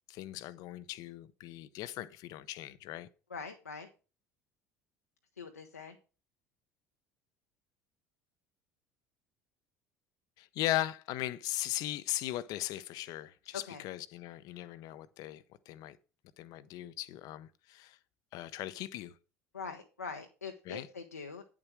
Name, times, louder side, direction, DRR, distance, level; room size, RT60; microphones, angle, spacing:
voice 1, 0.1-3.1 10.4-16.0 16.4-18.0 18.3-19.1 20.7-20.9, left 15 dB, 55° left, 0.7 m, -38 dB
voice 2, 3.3-3.9 5.4-6.0 13.7-13.8 19.5-21.4, left 5 dB, 85° left, 0.9 m, -43 dB
9.9 x 7.4 x 4.7 m
figure-of-eight pair, 65°, 8 cm